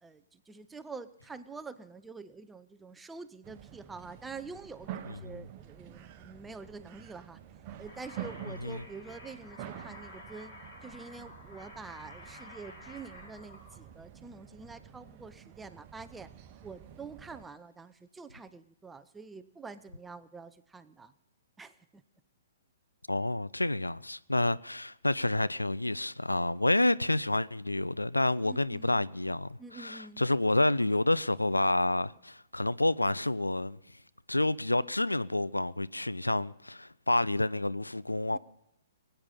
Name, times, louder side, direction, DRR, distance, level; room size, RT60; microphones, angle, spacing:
voice 1, 0.0-7.4 7.8-10.5 10.8-16.3 16.6-21.1 21.6-22.0 28.4-28.9 29.6-30.2 38.3-38.4, right 4 dB, 10° right, 0.6 m, -46 dB
sound 1, 3.4-17.4, right 10 dB, 30° right, 1.0 m, -48 dB
sound 2, 7.8-13.8, left 2 dB, 40° left, 4.4 m, -51 dB
voice 2, 23.1-33.8 34.3-38.4, left 2 dB, 80° left, 0.4 m, -29 dB
23.0 x 8.9 x 5.5 m
figure-of-eight pair, 115°, 0 cm